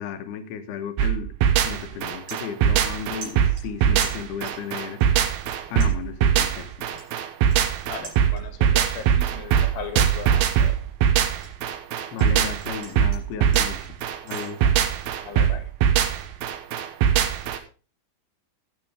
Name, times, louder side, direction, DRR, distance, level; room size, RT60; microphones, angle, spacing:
voice 1, 0.0-1.3 1.6-5.0 5.7-6.7 12.1-14.0 14.2-14.6, left 7 dB, 70° left, 8 dB, 2.8 m, -34 dB
sound 1, 1.0-17.6, right 9 dB, 70° right, 2.5 m, -21 dB
sound 2, 1.4-1.6 1.9-3.0 3.2-4.7 5.0-5.5 5.8-8.7 9.1-9.4 9.8-12.3 12.6-14.5, right 3 dB, 55° right, 6.3 m, -45 dB
voice 2, 7.9-10.7 14.6-14.7 15.2-15.7, left 7 dB, 85° left, 6 dB, 4.2 m, -37 dB
16.0 x 7.6 x 3.5 m, 0.35 s
omnidirectional pair, 5.3 m